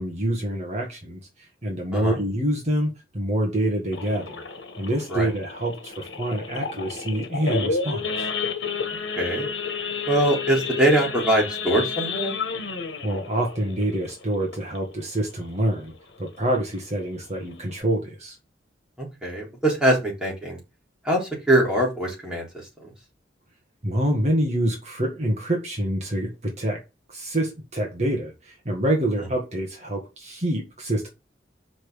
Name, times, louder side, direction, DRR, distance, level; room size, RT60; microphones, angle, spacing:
voice 1, 0.0-4.4 4.8-8.3 13.0-15.9 16.2-18.4 23.8-26.8 27.1-31.1, right 1 dB, 40° right, 1.8 m, -26 dB
Idling / Accelerating revving vroom / Sawing, 3.9-15.0 15.4-15.6 15.9-16.0 16.4-16.7 17.2-17.3 17.5-17.8, left 5 dB, 85° left, 1.4 m, -31 dB
voice 2, 9.2-9.5 10.1-12.3 19.0-20.6 21.0-22.5 22.8-22.9, right 1 dB, 5° right, 3.7 m, -22 dB
6.1 x 5.3 x 6.3 m
head